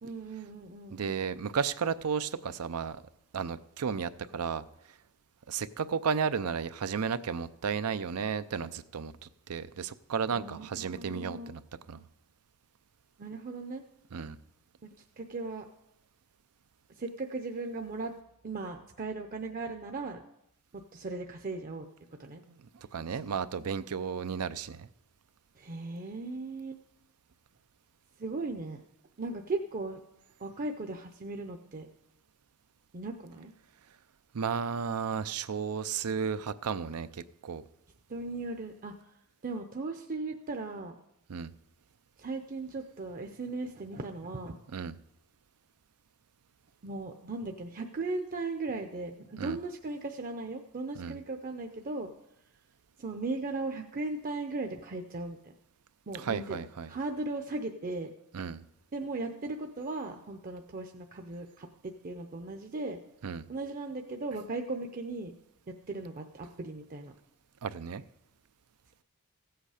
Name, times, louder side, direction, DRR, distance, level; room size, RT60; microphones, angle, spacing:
voice 1, 0.0-1.1 10.3-11.5 11.9-12.0 13.2-13.8 14.8-14.9 15.2-15.6 16.9-18.1 18.4-20.2 20.7-21.9 22.2-22.4 23.1-23.2 25.6-26.8 28.2-28.8 29.2-30.0 30.4-31.9 32.9-33.5 38.1-39.1 39.4-41.0 42.2-44.6 46.8-52.1 53.0-55.5 56.1-58.1 58.9-63.0 63.5-65.3 65.7-67.1, right 3 dB, 40° right, 4 dB, 0.6 m, -37 dB
voice 2, 0.9-3.0 3.3-4.7 5.5-11.6 11.9-12.0 14.1-14.4 22.5-24.9 34.3-37.6 41.3-41.5 44.7-45.0 49.4-49.6 51.0-51.2 56.2-56.9 58.3-58.6 63.2-63.5 67.6-68.0, right 6 dB, 90° right, 14 dB, 0.5 m, -33 dB
15.0 x 8.0 x 4.9 m, 0.86 s
head